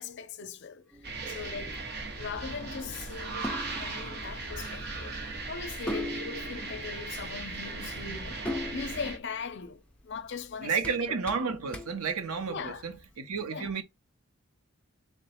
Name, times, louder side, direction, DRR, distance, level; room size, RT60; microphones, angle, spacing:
voice 1, 0.0-1.8 2.2-8.4 8.7-11.0 12.5-12.8 13.5-13.7, left 5 dB, 50° left, 0.5 m, -40 dB
sound 1, 0.9-13.0, left 1 dB, 5° left, 0.5 m, -42 dB
sound 2, 1.0-9.2, right 3 dB, 45° right, 0.9 m, -38 dB
voice 2, 10.6-13.8, right 5 dB, 85° right, 0.7 m, -31 dB
3.8 x 2.2 x 4.2 m
head